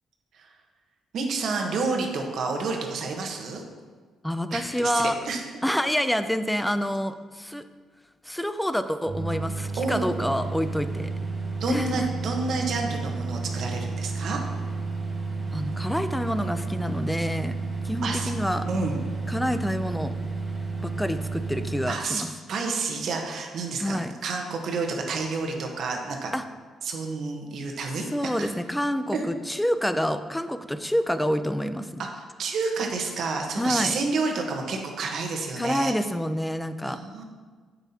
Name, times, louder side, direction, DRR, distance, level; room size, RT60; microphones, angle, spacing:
voice 1, 1.1-3.6 4.5-5.4 9.8-10.1 11.6-14.4 18.0-18.4 18.7-19.0 21.9-22.2 22.5-26.3 26.8-28.5 29.1-29.2 32.0-35.9 36.8-37.2, right 4 dB, 65° right, 2 dB, 1.1 m, -29 dB
voice 2, 4.2-5.2 5.6-7.6 8.2-11.1 11.7-12.1 15.5-17.5 17.8-18.7 19.3-20.1 20.8-22.3 23.8-24.1 26.3-26.4 28.1-32.0 33.6-34.0 35.6-37.0, equal, 5° left, 11 dB, 0.4 m, -27 dB
sound 1, 9.0-21.9, right 3 dB, 35° right, 1.3 m, -31 dB
8.2 x 6.9 x 2.8 m, 1.5 s
cardioid pair, 90°, 0 cm